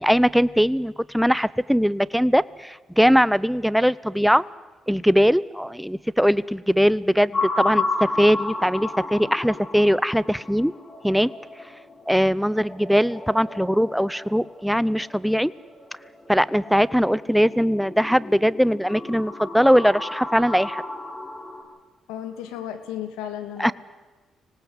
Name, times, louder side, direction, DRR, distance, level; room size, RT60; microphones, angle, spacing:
voice 1, 0.0-4.4 4.9-10.7 11.0-11.3 12.1-15.5 16.3-20.8 23.6-23.7, equal, ahead, 20 dB, 0.7 m, -20 dB
sound 1, 7.3-21.6, left 2 dB, 35° left, 7.4 m, -33 dB
voice 2, 22.1-23.7, left 10 dB, 90° left, 9 dB, 2.0 m, -34 dB
25.5 x 18.5 x 8.1 m, 1.2 s
supercardioid pair, 60°, 0 cm